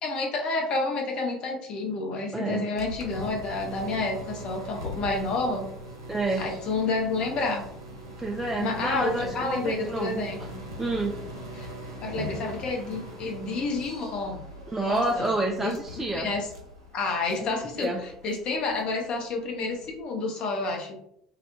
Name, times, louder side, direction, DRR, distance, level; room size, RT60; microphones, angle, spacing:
voice 1, 0.0-5.6 6.4-7.6 8.6-10.4 11.6-11.7 12.0-14.4 14.8-15.3 15.5-15.8 16.1-16.5 16.9-17.9 18.2-21.0, left 3 dB, 45° left, 1 dB, 0.6 m, -29 dB
voice 2, 2.3-2.7 6.1-6.5 8.2-10.2 10.8-11.2 14.7-16.3 17.4-18.0, right 2 dB, 15° right, -1 dB, 0.3 m, -29 dB
sound 1, 2.8-20.0, equal, 85° right, 0.5 m, -41 dB
2.3 x 2.0 x 2.8 m, 0.73 s
figure-of-eight pair, 60°, 2 cm